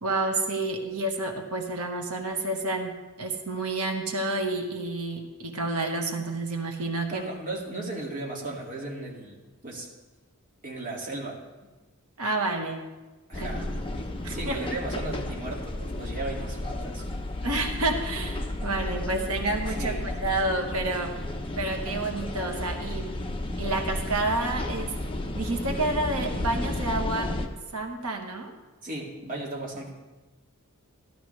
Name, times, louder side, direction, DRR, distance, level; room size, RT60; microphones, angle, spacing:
voice 1, 0.0-2.9 3.2-7.2 12.2-12.8 13.4-13.6 14.2-14.6 17.4-19.9 20.2-21.1 21.6-23.1 23.6-25.0 25.3-27.3 27.7-28.5, right 2 dB, 85° right, 3 dB, 1.5 m, -29 dB
voice 2, 7.1-9.9 10.6-11.4 13.3-13.7 14.3-17.0 19.8-20.1 28.8-29.9, right 2 dB, 40° right, -2 dB, 2.2 m, -36 dB
sound 1, 13.3-27.5, left 1 dB, 25° left, 0.9 m, -33 dB
15.5 x 12.0 x 3.3 m, 1.2 s
head